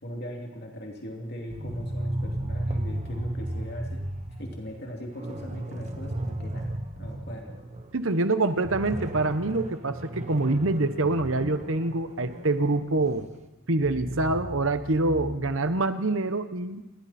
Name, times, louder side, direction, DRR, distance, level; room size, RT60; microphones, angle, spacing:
voice 1, 0.0-4.0 4.4-7.5, equal, 50° left, 1 dB, 2.8 m, -40 dB
sound 1, 1.5-7.9 8.2-8.3 8.6-13.3 13.7-15.4, right 1 dB, 35° right, 1.4 m, -34 dB
voice 2, 7.9-13.3 13.7-16.8, right 2 dB, 65° right, 10 dB, 1.1 m, -25 dB
28.5 x 21.5 x 4.4 m, 1.1 s
head